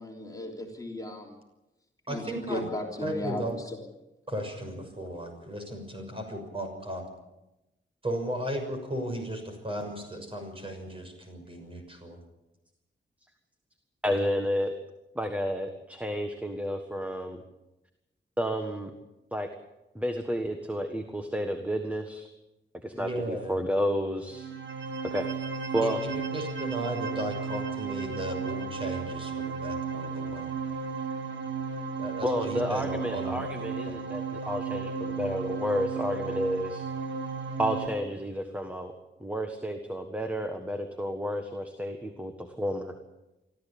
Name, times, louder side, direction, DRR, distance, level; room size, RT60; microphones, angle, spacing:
voice 1, 0.0-1.3 2.1-3.8, left 1 dB, 20° left, 0 dB, 3.5 m, -36 dB
voice 2, 2.1-2.6 3.0-3.6 4.3-7.0 8.0-12.2 22.9-23.6 25.8-30.5 32.0-33.5, right 1 dB, 25° right, 4 dB, 6.3 m, -35 dB
voice 3, 14.0-14.7 15.1-17.4 18.4-18.9 19.3-19.5 19.9-22.3 22.8-24.5 25.0-25.3 25.7-26.0 32.2-36.8 37.6-38.9 39.2-42.9, equal, 5° right, 5 dB, 1.6 m, -31 dB
sound 1, 24.3-37.9, right 5 dB, 70° right, 1.9 m, -34 dB
24.5 x 14.5 x 8.7 m, 0.98 s
wide cardioid pair, 140°, 20 cm